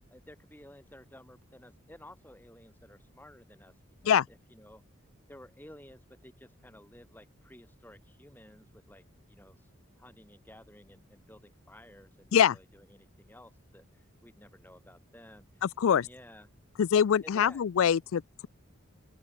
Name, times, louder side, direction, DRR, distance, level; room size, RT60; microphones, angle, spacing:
voice 1, 0.1-3.8 4.0-4.8 5.3-9.0 9.3-9.7 10.0-16.5 17.2-17.6, left 1 dB, 10° left, 7.0 m, -54 dB
voice 2, 15.6-16.1 16.8-18.5, left 8 dB, 80° left, 0.4 m, -24 dB
open air
head